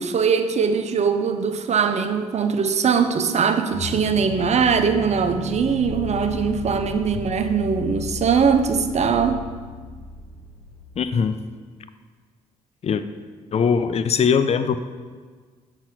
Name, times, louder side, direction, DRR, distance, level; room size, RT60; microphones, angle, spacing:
voice 1, 0.0-9.4, right 6 dB, 45° right, 8 dB, 0.6 m, -21 dB
sound 1, 3.7-10.9, left 5 dB, 80° left, 1.2 m, -35 dB
voice 2, 11.0-11.4 12.8-13.0 13.5-14.8, left 6 dB, 40° left, 11 dB, 0.5 m, -20 dB
5.9 x 4.4 x 5.7 m, 1.5 s
hypercardioid pair, 50°, 16 cm